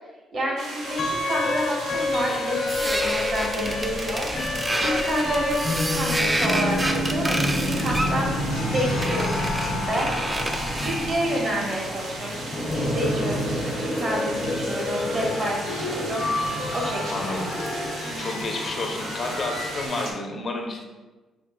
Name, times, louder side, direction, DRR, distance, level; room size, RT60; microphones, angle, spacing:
voice 1, 0.3-4.3 4.8-8.3 8.7-10.1 10.7-16.2 16.7-17.4 18.0-18.4, equal, 55° right, -2 dB, 1.2 m, -29 dB
sound 1, 0.6-20.1, right 2 dB, 90° right, 0.8 m, -37 dB
sound 2, 0.8-19.9, left 1 dB, 80° left, 0.9 m, -29 dB
sound 3, 2.7-11.2, right 1 dB, 15° right, 0.4 m, -29 dB
voice 2, 17.1-17.5 18.2-20.8, left 2 dB, 50° left, 2 dB, 0.6 m, -31 dB
5.3 x 2.9 x 2.2 m, 1.3 s
cardioid pair, 90°, 0 cm